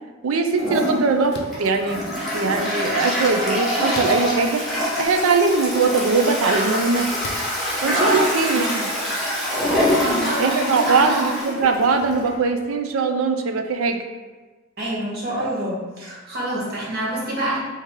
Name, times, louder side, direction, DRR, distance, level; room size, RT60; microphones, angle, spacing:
voice 1, 0.2-2.0 2.3-4.6 5.0-7.1 7.8-8.9 10.4-14.0, right 4 dB, 85° right, 6 dB, 0.5 m, -21 dB
Toilet flush, 0.5-12.3, equal, ahead, 1.0 m, -25 dB
sound 1, 1.3-1.6 3.9-4.5 5.2-5.3 7.2-7.6, left 2 dB, 50° left, 0.5 m, -34 dB
voice 2, 7.8-8.2 8.5-8.7 9.9-11.3 14.8-17.6, right 1 dB, 50° right, -6 dB, 1.3 m, -27 dB
4.7 x 2.8 x 3.6 m, 1.3 s
head